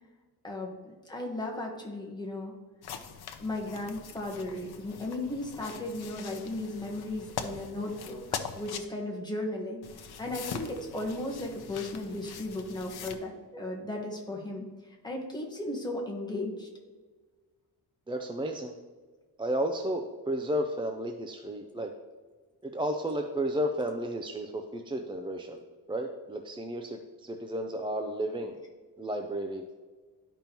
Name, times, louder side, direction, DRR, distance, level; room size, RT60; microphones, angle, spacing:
voice 1, 0.4-2.5 3.4-8.2 8.5-9.8 10.2-16.7, left 1 dB, 10° left, -1 dB, 1.2 m, -36 dB
sound 1, 2.8-8.8 9.8-13.2, left 7 dB, 70° left, 0.7 m, -42 dB
voice 2, 18.1-18.7 19.4-21.9 22.6-25.6 25.9-28.5 29.0-29.7, right 1 dB, 15° right, 4 dB, 0.3 m, -32 dB
12.0 x 5.3 x 2.9 m, 1.4 s
wide cardioid pair, 165°, 40 cm